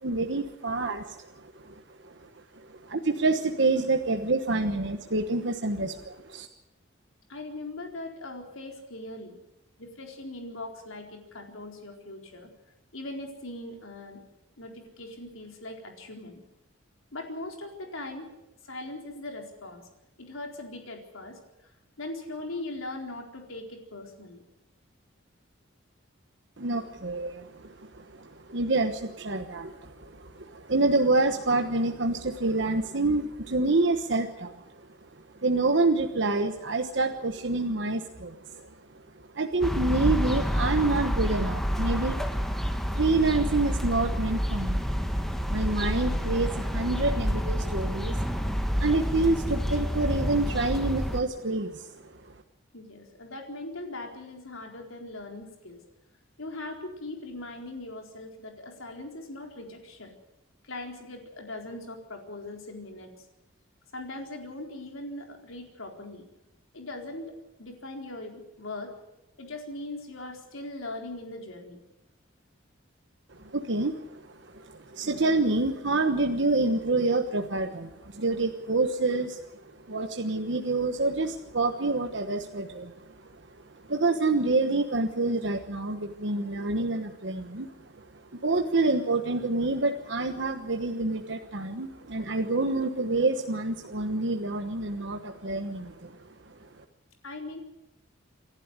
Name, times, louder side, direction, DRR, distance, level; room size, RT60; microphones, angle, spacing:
voice 1, 0.0-2.3 2.6-6.5 26.6-34.9 35.1-38.7 39.1-44.8 45.5-52.4 73.3-83.3 83.7-87.7 88.0-88.1 88.3-96.2 96.4-96.7, right 2 dB, 60° right, 5 dB, 1.2 m, -28 dB
voice 2, 7.3-9.4 9.8-12.5 12.9-14.2 14.6-16.4 17.1-18.3 18.6-19.9 20.2-21.7 22.0-24.4 52.7-55.8 56.4-60.1 60.6-63.3 63.9-66.2 66.7-68.9 69.4-71.8 97.2-97.6, left 2 dB, 80° left, 2 dB, 4.2 m, -40 dB
sound 1, 39.6-51.2, equal, ahead, 1.3 m, -28 dB
28.0 x 11.5 x 8.3 m, 0.91 s
head